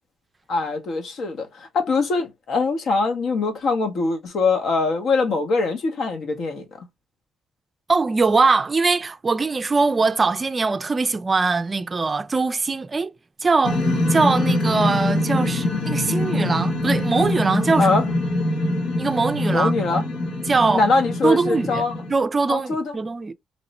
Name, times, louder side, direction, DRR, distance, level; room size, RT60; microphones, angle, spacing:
voice 1, 0.5-6.9 17.8-18.1 19.5-20.1 20.6-21.9 22.5-22.9, left 3 dB, 65° left, 0.9 m, -23 dB
voice 2, 7.9-13.1 13.4-13.8 14.1-18.0 19.0-19.7 20.5-20.8 21.2-21.8 22.1-23.3, right 4 dB, 30° right, 0.4 m, -21 dB
sound 1, 13.6-22.1, left 1 dB, 80° left, 1.1 m, -24 dB
3.0 x 2.1 x 4.1 m
cardioid pair, 90°, 0 cm